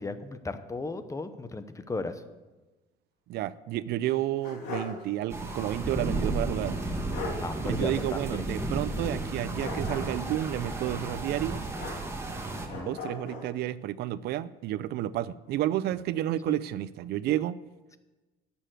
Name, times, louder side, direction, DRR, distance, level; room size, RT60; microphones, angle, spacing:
voice 1, 0.0-2.2 7.4-8.2 12.5-13.0, left 3 dB, 20° left, 11 dB, 0.8 m, -35 dB
voice 2, 3.3-6.8 7.7-11.6 12.7-17.6, right 13 dB, 75° right, 17 dB, 0.5 m, -31 dB
sound 1, 4.0-5.0 5.4-5.5 6.7-6.8 7.1-7.4 9.5-10.3 11.7-12.3 12.7-13.5, left 3 dB, 85° left, 3.1 m, -38 dB
sound 2, 5.3-12.7, right 2 dB, 15° right, 1.7 m, -33 dB
11.0 x 7.0 x 7.7 m, 1.2 s
cardioid pair, 110°, 17 cm